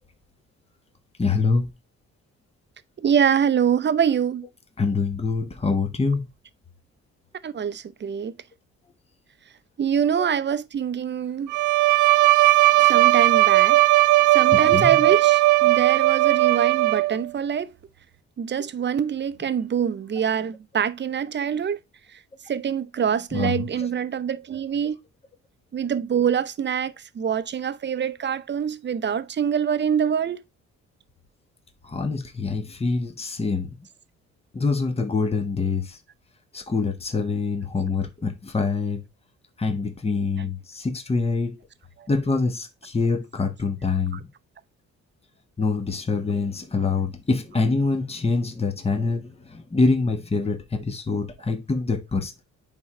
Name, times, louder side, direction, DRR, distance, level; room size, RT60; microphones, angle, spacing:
voice 1, 1.2-1.7 4.8-6.2 14.5-15.0 23.3-23.7 31.9-33.7 34.5-35.9 36.5-39.0 39.6-41.6 42.1-44.2 45.6-52.4, left 4 dB, 20° left, 1.3 m, -25 dB
voice 2, 3.0-4.5 7.4-8.3 9.8-11.5 12.8-13.8 14.3-17.7 18.4-21.8 22.5-24.9 25.7-30.4 40.4-40.5 44.1-44.2, right 8 dB, 35° right, 0.7 m, -25 dB
Bowed string instrument, 11.5-17.3, right 18 dB, 75° right, 0.6 m, -17 dB
9.2 x 3.9 x 3.2 m
cardioid pair, 90°, 30 cm